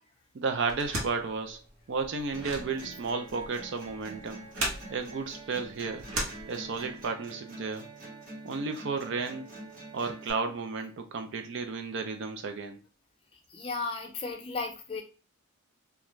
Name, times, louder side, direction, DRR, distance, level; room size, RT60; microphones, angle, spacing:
voice 1, 0.3-1.6 1.9-4.4 4.9-6.0 6.5-7.9 8.4-9.5 9.9-12.8, right 4 dB, 55° right, 6 dB, 0.4 m, -33 dB
sound 1, 0.7-7.0, right 1 dB, 80° right, 1.0 m, -38 dB
sound 2, 2.3-10.3, right 2 dB, 40° right, 0.9 m, -46 dB
voice 2, 13.5-15.0, left 3 dB, 25° left, 3 dB, 0.4 m, -34 dB
2.4 x 2.2 x 3.0 m, 0.32 s
head